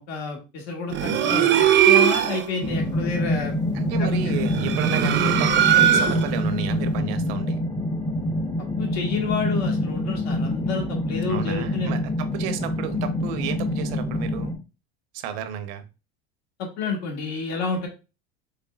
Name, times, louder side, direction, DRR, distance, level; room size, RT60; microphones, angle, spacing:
voice 1, 0.0-3.5 4.0-4.4 8.8-12.0 16.6-17.9, left 4 dB, 60° left, 1 dB, 1.4 m, -29 dB
sound 1, 0.9-2.5 4.4-6.4, right 10 dB, 35° right, 0.5 m, -19 dB
sound 2, 2.6-14.5, left 1 dB, 10° left, 0.7 m, -26 dB
voice 2, 3.7-7.6 11.2-14.5 15.1-15.8, right 9 dB, 70° right, 10 dB, 0.7 m, -32 dB
4.1 x 3.3 x 2.3 m, 0.30 s
supercardioid pair, 95°, 30 cm